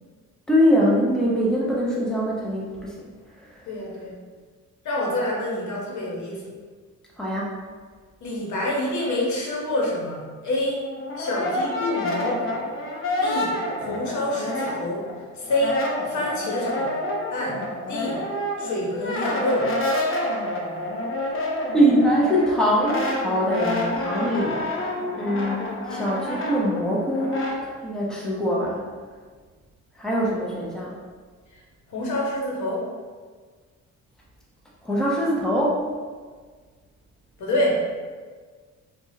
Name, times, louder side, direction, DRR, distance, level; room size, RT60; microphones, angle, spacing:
voice 1, 0.5-3.0 3.5-3.6 7.2-7.6 21.7-28.9 30.0-30.9 34.8-35.8, equal, ahead, -5 dB, 0.8 m, -23 dB
voice 2, 3.7-4.2 4.8-6.6 8.2-10.8 11.2-12.6 13.2-15.1 15.3-17.0 17.3-18.3 18.6-19.8 24.1-24.5 31.5-31.6 31.9-32.9 37.4-37.9, left 1 dB, 70° left, -3 dB, 1.1 m, -27 dB
Brass instrument, 10.7-15.1 15.4-27.6, left 1 dB, 45° left, 0.8 m, -28 dB
4.7 x 2.5 x 2.8 m, 1.5 s
cardioid pair, 90°, 30 cm